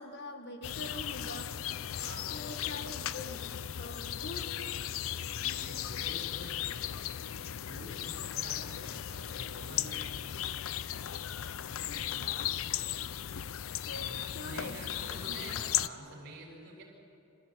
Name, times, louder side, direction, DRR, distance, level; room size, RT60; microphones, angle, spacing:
voice 1, 0.0-1.6 2.3-4.8 8.5-8.7 11.9-12.6 13.8-15.6, left 2 dB, 55° left, 6 dB, 1.7 m, -45 dB
sound 1, 0.6-15.9, left 11 dB, 75° left, 0.5 m, -36 dB
voice 2, 1.9-2.5 5.4-7.0 7.6-10.3 13.9-16.8, right 1 dB, 50° right, 0 dB, 6.6 m, -48 dB
28.0 x 14.0 x 8.8 m, 2.6 s
head